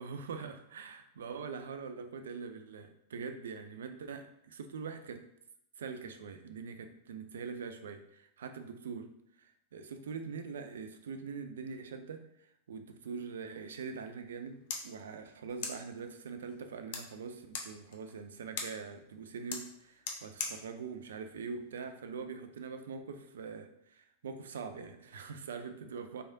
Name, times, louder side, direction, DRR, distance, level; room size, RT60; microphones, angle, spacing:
voice 1, 0.0-5.2 5.8-9.1 9.4-12.2 12.7-26.2, right 5 dB, 65° right, 8 dB, 0.3 m, -43 dB
sound 1, 14.3-22.3, left 5 dB, 50° left, 0.5 m, -45 dB
3.4 x 3.4 x 2.6 m, 0.74 s
figure-of-eight pair, 90°, 0 cm